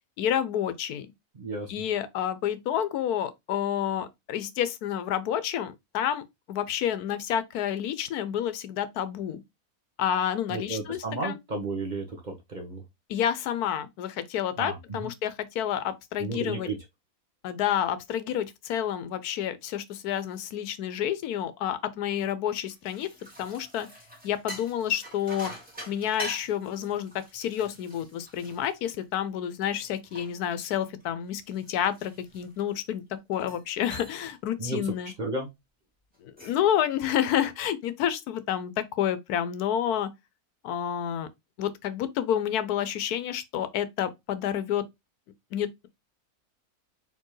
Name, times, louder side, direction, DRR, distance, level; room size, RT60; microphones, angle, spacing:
voice 1, 0.2-1.1 1.7-9.4 10.0-11.4 13.1-16.7 17.4-23.1 23.4-23.9 24.2-25.5 25.9-33.0 33.3-35.1 36.2-40.1 40.6-41.3 41.6-44.8 45.5-45.9, left 10 dB, 85° left, 1.2 m, -29 dB
voice 2, 1.3-1.8 10.5-12.8 14.6-15.1 16.2-16.7 34.6-34.8 35.2-35.5, right 3 dB, 35° right, 1.0 m, -33 dB
sound 1, 22.6-29.4 29.8-32.8 33.3-33.7 33.9-34.4 34.7-35.0 36.1-36.7, equal, 5° right, 1.5 m, -45 dB
4.4 x 3.4 x 3.1 m
omnidirectional pair, 1.6 m